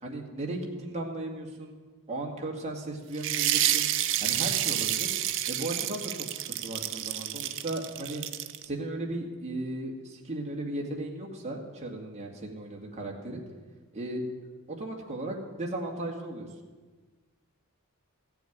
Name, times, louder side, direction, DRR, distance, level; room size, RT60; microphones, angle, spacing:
voice 1, 0.0-1.8 2.1-3.9 4.2-5.1 5.5-8.2 8.6-13.4 13.9-14.2 14.8-16.5, right 2 dB, 30° right, -1 dB, 2.2 m, -36 dB
sound 1, 3.2-8.6, right 12 dB, 60° right, 0.7 m, -29 dB
15.0 x 7.1 x 9.5 m, 1.4 s
head